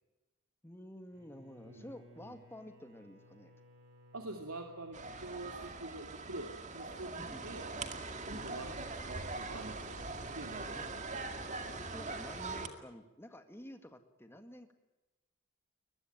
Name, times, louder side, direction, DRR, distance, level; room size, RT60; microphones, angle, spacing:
voice 1, 0.6-3.5 7.2-7.5 8.2-8.5 10.8-11.3 11.7-14.7, equal, 10° left, 7 dB, 1.9 m, -51 dB
Bowed string instrument, 1.1-6.4, left 1 dB, 55° right, 8.0 m, -60 dB
voice 2, 4.1-7.7 8.3-10.0 10.3-10.8, right 2 dB, 80° right, 3 dB, 2.5 m, -46 dB
sound 1, 4.9-12.7, right 3 dB, 35° right, 2.1 m, -42 dB
22.0 x 21.0 x 9.2 m, 1.0 s
head